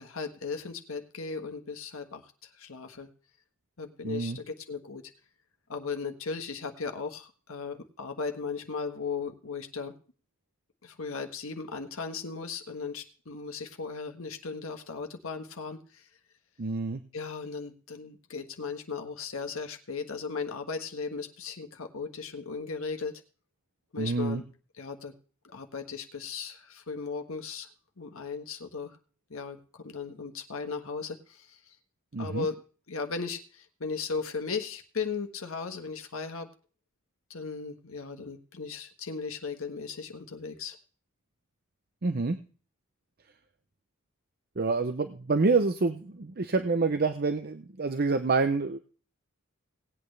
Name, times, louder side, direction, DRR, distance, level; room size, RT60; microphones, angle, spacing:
voice 1, 0.0-3.1 3.8-5.0 5.7-9.9 10.8-16.1 17.1-23.2 23.9-24.4 24.8-25.1 25.4-27.7 28.0-29.0 29.3-31.7 32.2-32.6 32.9-36.5 37.3-40.8, left 4 dB, 70° left, 5 dB, 1.4 m, -37 dB
voice 2, 4.0-4.4 16.6-17.0 24.0-24.4 32.1-32.5 42.0-42.4 44.6-48.8, right 4 dB, 45° right, 9 dB, 0.7 m, -27 dB
18.5 x 8.6 x 3.3 m, 0.39 s
head